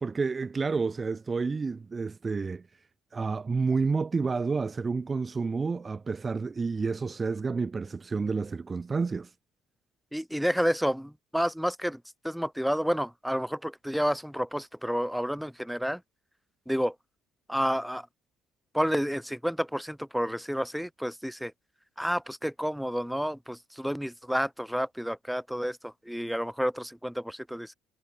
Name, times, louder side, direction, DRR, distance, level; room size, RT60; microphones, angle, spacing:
voice 1, 0.0-2.6 3.1-9.3, right 4 dB, 30° right, 0.8 m, -30 dB
voice 2, 10.1-16.0 16.7-16.9 17.5-18.1 18.7-21.5 22.0-27.7, equal, ahead, 1.5 m, -30 dB
supercardioid pair, 70°, 0 cm